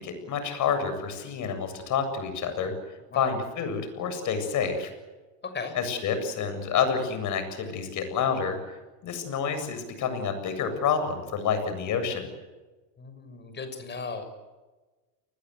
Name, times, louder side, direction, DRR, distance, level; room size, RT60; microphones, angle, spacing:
voice 1, 0.0-2.7 3.1-4.9 5.7-8.6 9.0-12.3, left 6 dB, 40° left, 8 dB, 7.7 m, -28 dB
voice 2, 13.0-14.3, left 4 dB, 20° left, 8 dB, 6.7 m, -36 dB
29.5 x 21.0 x 8.2 m, 1.2 s
supercardioid pair, 130°, 47 cm